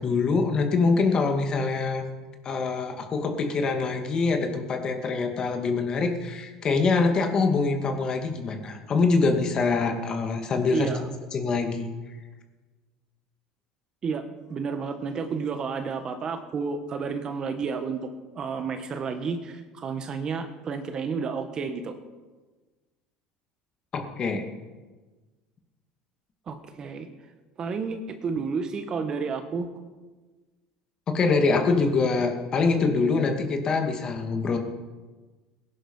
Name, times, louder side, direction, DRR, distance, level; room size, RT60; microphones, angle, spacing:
voice 1, 0.0-2.0 2.4-10.9 11.3-11.9 23.9-24.4 31.1-34.6, left 4 dB, 35° left, 4 dB, 2.2 m, -24 dB
voice 2, 10.7-11.1 14.0-14.2 14.5-22.0 26.5-27.1 27.6-29.7 34.5-34.6, right 5 dB, 35° right, 8 dB, 1.4 m, -31 dB
18.0 x 11.0 x 5.6 m, 1.3 s
supercardioid pair, 120°, 2 cm